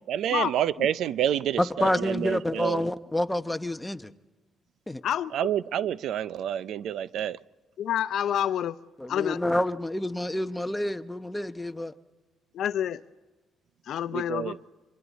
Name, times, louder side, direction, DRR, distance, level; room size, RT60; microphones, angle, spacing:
voice 1, 0.1-2.8 5.3-7.4 14.1-14.6, right 10 dB, 75° right, 0.5 m, -28 dB
voice 2, 1.6-4.1 4.9-5.0 9.0-11.9, left 1 dB, 10° left, 1.0 m, -28 dB
voice 3, 5.0-5.5 7.8-8.8 9.1-9.4 12.5-13.0 13.9-14.5, left 10 dB, 70° left, 0.7 m, -28 dB
27.5 x 24.0 x 4.1 m
cardioid pair, 90°, 0 cm